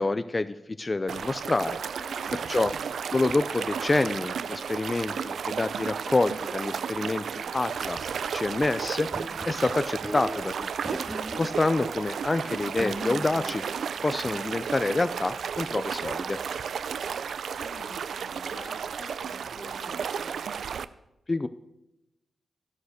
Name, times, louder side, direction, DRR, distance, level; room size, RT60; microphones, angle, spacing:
voice 1, 0.0-1.8 2.3-2.7 3.1-9.1 9.4-11.0 11.4-13.6 14.0-16.4 21.3-21.5, left 2 dB, 30° left, 12 dB, 0.5 m, -27 dB
sound 1, 1.1-20.9, right 7 dB, 85° right, 0.5 m, -33 dB
voice 2, 2.0-2.8 17.6-20.4, left 3 dB, 85° left, 2 dB, 2.7 m, -49 dB
sound 2, 9.1-11.9 12.8-14.8, equal, ahead, 1.0 m, -39 dB
13.0 x 11.5 x 6.6 m, 0.91 s
cardioid pair, 85°, 0 cm